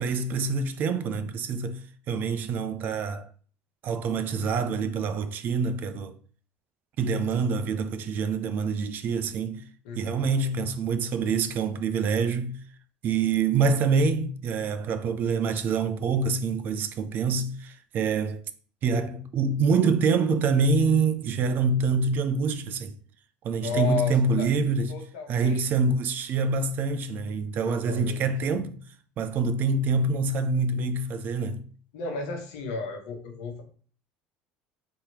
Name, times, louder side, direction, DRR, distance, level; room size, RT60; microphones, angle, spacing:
voice 1, 0.0-1.8 2.1-3.3 3.8-6.2 7.0-9.6 10.0-12.6 13.0-18.4 18.8-23.0 23.4-24.9 25.3-28.8 29.2-31.6, right 4 dB, 50° right, 0.5 m, -26 dB
voice 2, 9.8-10.2 23.5-24.5 24.9-25.7 27.6-28.3 31.9-33.6, left 5 dB, 85° left, 1.2 m, -33 dB
3.6 x 2.9 x 4.8 m
supercardioid pair, 100°, 4 cm